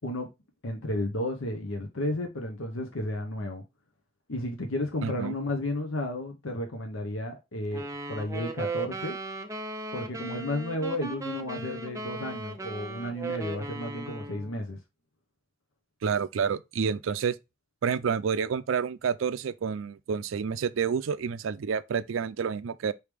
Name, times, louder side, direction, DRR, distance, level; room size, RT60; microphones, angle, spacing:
voice 1, 0.6-3.6 4.3-9.2 9.9-14.8, left 1 dB, 85° left, 0.9 m, -33 dB
voice 2, 5.0-5.3 16.0-17.4 17.8-22.9, right 6 dB, 75° right, 0.4 m, -29 dB
sound 1, 7.7-14.5, right 2 dB, 15° right, 0.5 m, -37 dB
4.8 x 3.3 x 3.4 m
head